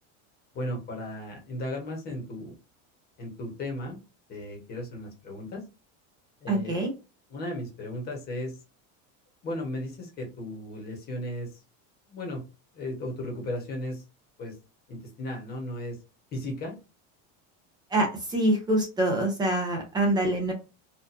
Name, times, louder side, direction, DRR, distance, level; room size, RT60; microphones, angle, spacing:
voice 1, 0.5-2.5 3.2-4.0 4.3-5.6 6.4-6.8 7.3-8.6 9.4-11.6 12.1-12.4 12.7-14.0 14.4-14.5 14.9-16.0 16.3-16.7, left 1 dB, 25° left, 0 dB, 1.1 m, -35 dB
voice 2, 6.5-6.9 17.9-20.5, right 1 dB, 10° right, 1 dB, 0.5 m, -25 dB
4.3 x 2.5 x 2.5 m, 0.31 s
cardioid pair, 180°, 41 cm